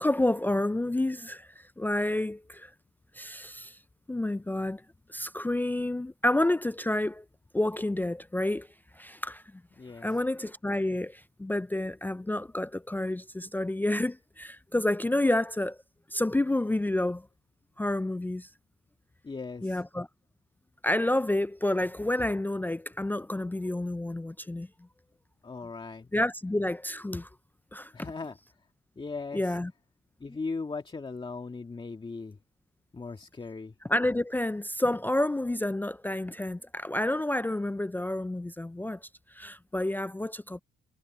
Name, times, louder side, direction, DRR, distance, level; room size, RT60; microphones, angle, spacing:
voice 1, 0.0-2.7 3.1-3.8 4.1-4.8 5.1-7.2 7.5-8.7 9.0-9.4 10.0-15.8 16.1-17.3 17.8-18.5 19.6-20.1 20.8-24.7 26.1-27.3 27.7-28.1 29.3-29.7 33.9-39.0 39.3-40.6, left 1 dB, 10° left, 0.4 m, -29 dB
voice 2, 9.8-10.2 19.2-19.8 25.4-26.1 27.9-28.4 29.0-29.6 30.2-32.4 32.9-33.7, left 4 dB, 25° left, 2.1 m, -38 dB
cardioid pair, 90°, 20 cm